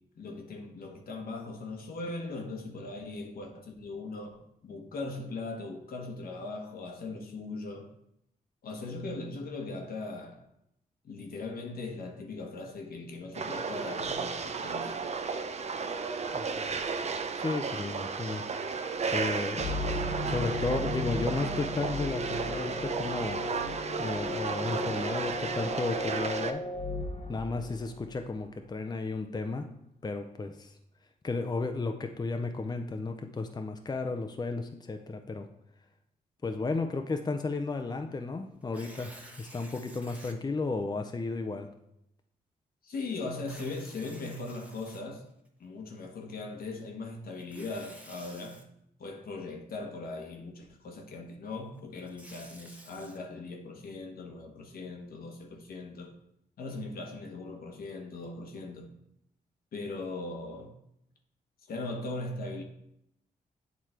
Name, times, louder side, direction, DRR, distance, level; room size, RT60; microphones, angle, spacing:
voice 1, 0.2-7.9 8.6-10.4 11.0-15.0 42.8-45.3 45.6-48.6 49.0-56.2 56.6-58.9 59.7-60.8 61.7-62.6, left 3 dB, 70° left, 1.1 m, -39 dB
sound 1, 13.3-26.5, right 5 dB, 45° right, 0.6 m, -34 dB
voice 2, 16.3-16.8 17.4-18.4 19.1-19.6 20.3-23.4 24.0-26.6 27.3-29.7 30.0-30.7 31.2-35.5 36.4-39.1 39.4-41.7, left 3 dB, 25° left, 0.6 m, -33 dB
sound 2, 19.6-28.2, left 2 dB, 45° left, 1.0 m, -36 dB
Tearing, 38.6-40.3 41.0-41.1 43.3-45.5 47.3-48.6 51.8-53.2, right 1 dB, 10° right, 1.1 m, -51 dB
8.2 x 3.1 x 4.3 m
cardioid pair, 60°, 16 cm